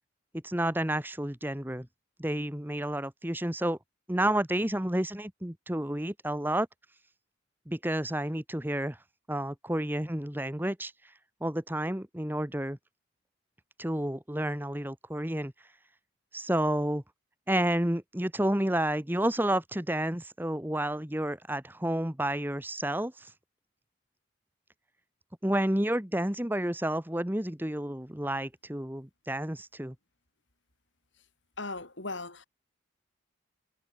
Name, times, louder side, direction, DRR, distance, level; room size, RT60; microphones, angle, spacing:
voice 1, 0.4-1.9 2.2-3.8 4.1-6.7 7.7-9.0 9.3-10.9 11.4-12.8 13.8-15.5 16.3-17.0 17.5-23.3 25.4-29.9, right 1 dB, 10° right, 1.3 m, -30 dB
voice 2, 31.6-32.4, left 3 dB, 70° left, 4.2 m, -37 dB
head